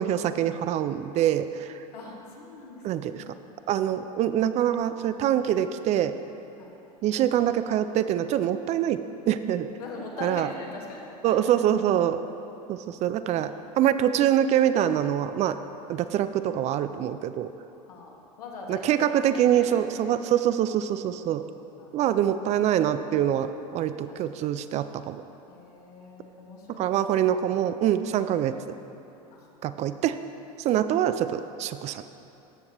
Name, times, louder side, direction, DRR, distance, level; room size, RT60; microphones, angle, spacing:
voice 1, 0.0-1.8 2.8-3.2 3.7-6.1 7.0-9.0 9.3-9.7 10.2-10.5 11.2-12.2 12.7-15.6 15.9-17.5 18.7-21.4 21.9-25.2 26.8-28.6 29.6-30.2 30.6-32.1, right 10 dB, 35° right, 11 dB, 0.4 m, -25 dB
voice 2, 1.9-3.3 6.6-6.7 9.8-11.4 12.2-12.3 17.9-20.1 21.8-22.1 24.1-24.5 25.5-27.0 29.3-29.8, left 3 dB, 80° left, -1 dB, 1.6 m, -42 dB
14.5 x 6.4 x 3.0 m, 2.8 s
hypercardioid pair, 105°, 19 cm